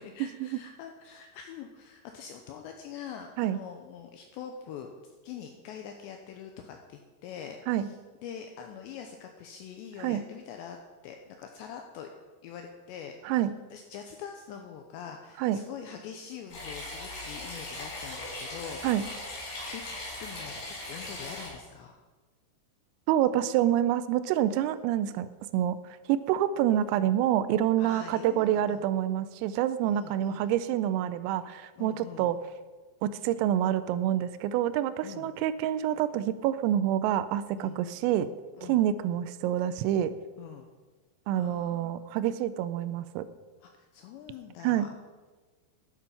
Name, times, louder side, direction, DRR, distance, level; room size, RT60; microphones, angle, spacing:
voice 1, 0.0-8.0 8.2-10.8 11.0-12.1 12.4-13.3 13.7-19.0 19.6-22.0 27.8-28.8 29.8-30.5 31.8-32.3 35.0-35.3 37.6-37.8 38.5-38.9 40.4-40.7 41.3-42.0 43.6-45.0, left 8 dB, 85° left, 4 dB, 2.5 m, -44 dB
sound 1, 16.5-21.5, left 2 dB, 55° left, 5.3 m, -39 dB
voice 2, 23.1-32.4 33.0-38.3 38.6-40.1 41.3-43.3 44.6-44.9, right 11 dB, 90° right, 14 dB, 3.3 m, -27 dB
12.0 x 7.4 x 5.6 m, 1.3 s
omnidirectional pair, 5.8 m